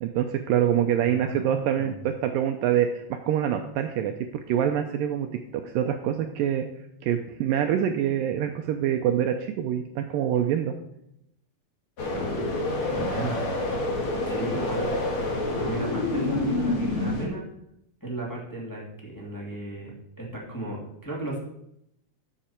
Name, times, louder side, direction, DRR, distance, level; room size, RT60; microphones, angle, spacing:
voice 1, 0.0-4.1 4.5-5.3 5.5-6.7 7.0-10.7, right 10 dB, 85° right, 5 dB, 2.0 m, -25 dB
voice 2, 1.0-2.0 12.1-12.4 12.9-13.5 14.2-14.9 15.6-17.5 18.0-19.9 20.2-21.4, right 1 dB, 10° left, -4 dB, 1.5 m, -34 dB
sound 1, 12.0-17.3, left 2 dB, 45° left, 1.9 m, -28 dB
12.0 x 7.7 x 4.4 m, 0.78 s
omnidirectional pair, 4.7 m